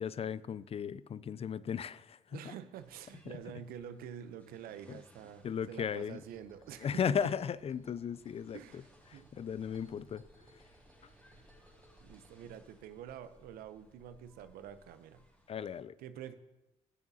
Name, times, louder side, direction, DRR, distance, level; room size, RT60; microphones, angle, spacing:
voice 1, 0.0-2.5 4.9-5.0 5.4-6.2 6.8-8.6 9.1-10.2 15.5-16.0, left 7 dB, 40° left, 0.4 m, -36 dB
voice 2, 2.3-7.3 8.5-9.3 11.3-11.5 12.0-15.2 16.0-16.3, right 9 dB, 75° right, 0.6 m, -47 dB
sound 1, 2.8-15.8, left 1 dB, 10° left, 2.7 m, -65 dB
sound 2, 6.1-12.3, right 1 dB, 25° right, 3.6 m, -62 dB
14.0 x 6.9 x 2.7 m
hypercardioid pair, 50°, 16 cm